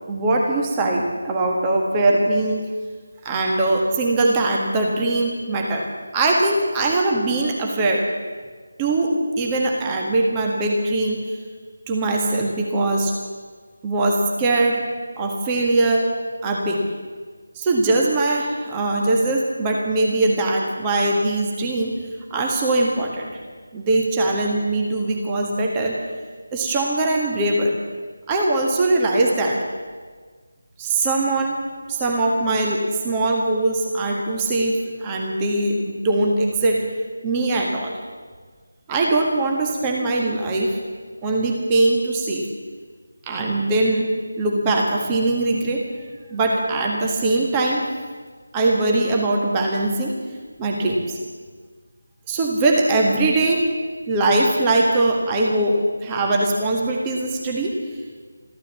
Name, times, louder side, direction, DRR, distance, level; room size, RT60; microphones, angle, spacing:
voice 1, 0.1-2.7 3.2-5.8 6.1-8.1 8.8-11.2 11.9-13.1 13.8-14.8 15.2-16.1 16.4-16.8 17.6-22.0 22.3-23.3 23.7-26.0 26.5-27.8 28.3-29.6 30.8-31.6 31.9-36.8 37.2-38.0 38.9-40.8 41.2-42.4 43.3-44.1 44.4-45.9 46.3-47.8 48.5-50.1 50.6-51.2 52.3-53.6 54.1-57.8, right 2 dB, 15° right, 0 dB, 1.6 m, -21 dB
14.5 x 13.0 x 7.5 m, 1.5 s
figure-of-eight pair, 160°, 0 cm